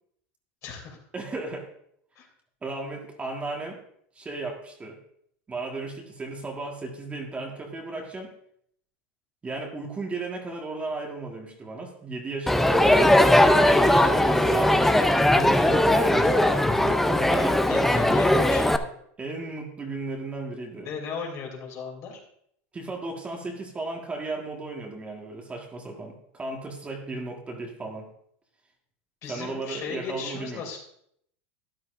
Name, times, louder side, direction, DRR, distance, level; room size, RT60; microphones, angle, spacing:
voice 1, 0.6-1.0 2.2-2.3 13.3-13.7 17.7-18.9 20.8-22.2 29.2-30.8, left 5 dB, 45° left, 1 dB, 3.0 m, -36 dB
voice 2, 1.1-1.7 2.6-3.8 4.1-5.0 5.5-8.3 9.4-13.0 13.7-14.8 15.3-17.8 19.2-21.0 22.7-28.1 29.3-30.6, right 3 dB, 20° right, 0 dB, 1.6 m, -35 dB
Crowd, 12.5-18.8, left 1 dB, 5° left, 0.5 m, -19 dB
13.0 x 10.0 x 2.6 m, 0.70 s
supercardioid pair, 120°, 7 cm